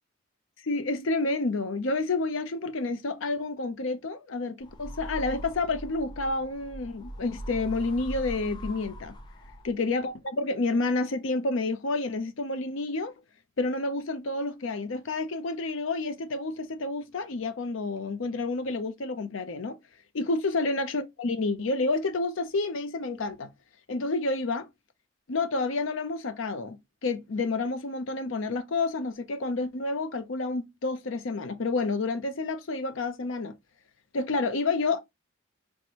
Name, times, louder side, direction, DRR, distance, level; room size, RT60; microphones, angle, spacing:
voice 1, 0.6-9.1 9.6-13.1 13.6-19.8 20.1-23.5 23.9-24.7 25.3-26.8 27.0-33.5 34.1-35.0, left 3 dB, 70° left, 0.6 m, -29 dB
sound 1, 4.6-9.9, equal, 20° left, 0.5 m, -41 dB
4.4 x 2.1 x 2.8 m
head